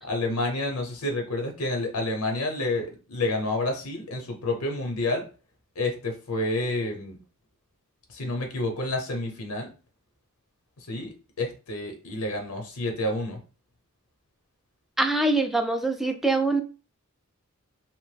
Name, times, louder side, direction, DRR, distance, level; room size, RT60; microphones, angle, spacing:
voice 1, 0.0-5.2 5.8-7.2 8.1-9.7 10.9-13.4, left 2 dB, 90° left, 4 dB, 0.7 m, -29 dB
voice 2, 15.0-16.6, right 2 dB, ahead, 6 dB, 0.3 m, -24 dB
3.0 x 2.0 x 3.2 m, 0.35 s
head